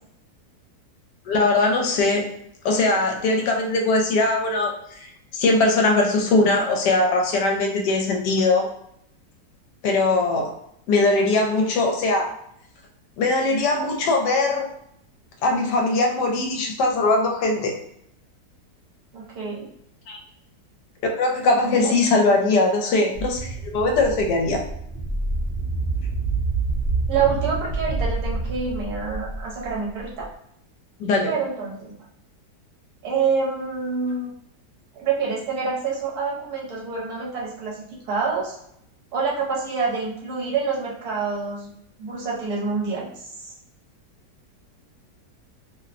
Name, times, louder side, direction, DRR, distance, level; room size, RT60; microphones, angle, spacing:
voice 1, 1.3-2.3 2.6-4.7 5.0-5.1 5.3-8.7 9.8-10.5 10.9-12.3 13.2-14.7 15.4-17.7 20.1-20.2 21.2-24.6 31.0-31.3, left 2 dB, 75° left, 2 dB, 1.2 m, -20 dB
voice 2, 19.1-19.7 21.6-21.9 27.1-30.2 31.3-31.9 33.0-34.3 35.0-38.6 39.1-41.7 42.0-43.5, right 5 dB, 65° right, -4 dB, 1.2 m, -27 dB
sound 1, 23.1-30.2, right 3 dB, 45° left, 0.8 m, -27 dB
3.0 x 2.1 x 2.4 m, 0.72 s
omnidirectional pair, 1.8 m